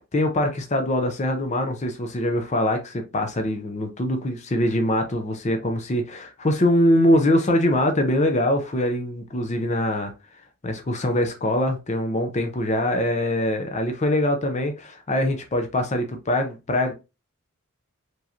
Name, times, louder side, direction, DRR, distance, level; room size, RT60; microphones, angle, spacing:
voice 1, 0.1-10.1 10.6-16.9, left 1 dB, 30° left, 0.6 m, -23 dB
4.8 x 3.1 x 2.7 m
head